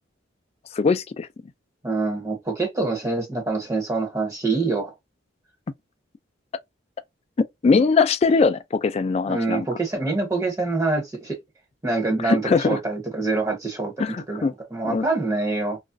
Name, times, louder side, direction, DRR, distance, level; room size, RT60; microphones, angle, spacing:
voice 1, 0.7-1.3 7.6-9.7 12.2-12.8 14.0-14.5 14.8-15.1, left 4 dB, 35° left, 0.3 m, -21 dB
voice 2, 1.8-4.9 9.3-11.4 11.8-15.8, right 3 dB, 15° right, 0.7 m, -25 dB
3.0 x 2.4 x 2.5 m
head